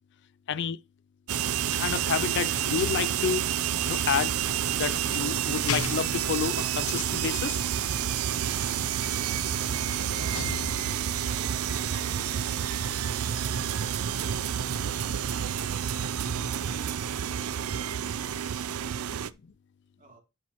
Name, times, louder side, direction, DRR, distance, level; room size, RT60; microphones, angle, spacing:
voice 1, 0.5-0.8 1.7-3.5 3.9-4.4 4.7-7.6, left 7 dB, 55° left, 0.4 m, -30 dB
sound 1, 1.3-19.3, right 9 dB, 90° right, 0.5 m, -29 dB
sound 2, 1.6-3.6 4.5-6.5 8.7-8.8 9.2-11.2 11.7-11.9, left 6 dB, 80° left, 0.9 m, -39 dB
sound 3, 3.7-12.1, equal, 10° left, 2.5 m, -49 dB
voice 2, 10.0-10.7 11.2-12.3 20.0-20.2, right 1 dB, 40° right, 2.9 m, -54 dB
10.0 x 7.5 x 3.0 m
head